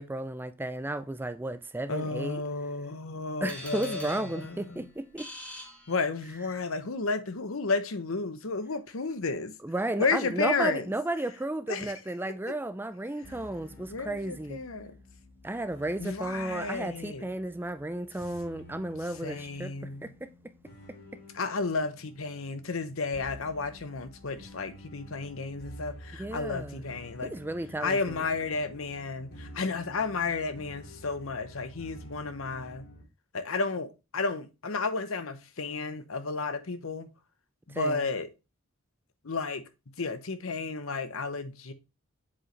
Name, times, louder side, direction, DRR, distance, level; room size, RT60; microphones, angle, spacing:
voice 1, 0.0-2.4 3.4-5.3 9.6-14.6 15.4-19.7 20.0-20.3 26.2-26.8 27.3-28.2 37.7-38.0, right 1 dB, 10° right, 0.4 m, -33 dB
voice 2, 1.9-4.9 5.9-9.5 10.0-10.9 11.7-11.9 13.9-14.9 16.0-17.3 19.2-20.1 21.3-27.3 27.8-32.8 33.3-37.1 37.7-38.3 39.2-39.6 40.0-41.7, left 4 dB, 75° left, 0.9 m, -32 dB
sound 1, 3.5-6.5, left 1 dB, 5° left, 1.8 m, -45 dB
sound 2, 13.2-33.0, equal, 50° left, 2.2 m, -50 dB
7.3 x 4.9 x 3.2 m
head